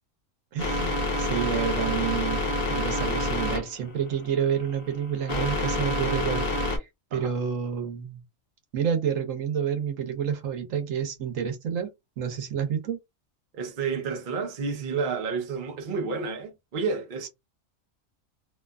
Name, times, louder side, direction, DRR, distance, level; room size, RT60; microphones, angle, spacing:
voice 1, 0.5-8.2 8.7-11.9 12.2-13.0 17.2-17.3, right 8 dB, 80° right, 1.2 m, -29 dB
sound 1, 0.6-6.8, left 1 dB, 50° left, 0.9 m, -28 dB
voice 2, 13.5-17.3, right 5 dB, 45° right, 0.8 m, -30 dB
2.8 x 2.3 x 2.2 m
omnidirectional pair, 1.3 m